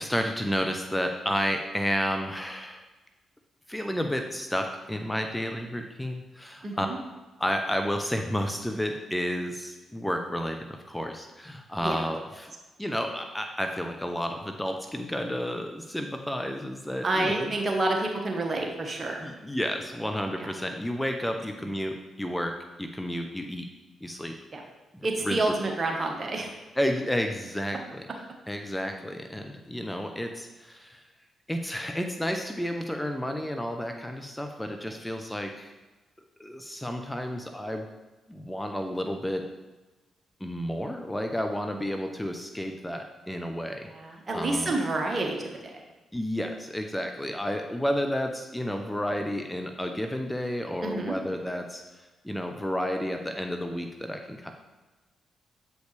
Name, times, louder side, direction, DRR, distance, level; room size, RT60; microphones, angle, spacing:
voice 1, 0.0-2.9 3.7-6.9 7.4-12.5 12.8-17.5 19.2-23.7 24.0-24.4 24.9-25.6 26.8-28.1 28.5-31.0 31.5-35.7 36.4-37.9 38.3-39.5 40.4-43.9 44.3-44.8 46.1-54.5, equal, 10° left, 4 dB, 0.7 m, -31 dB
voice 2, 6.6-7.0 11.8-12.0 17.0-19.2 20.4-20.5 24.5-24.6 25.0-26.5 43.9-45.7 50.8-51.2, right 2 dB, 40° right, 1 dB, 1.4 m, -28 dB
7.8 x 5.1 x 3.4 m, 1.2 s
hypercardioid pair, 40°, 0 cm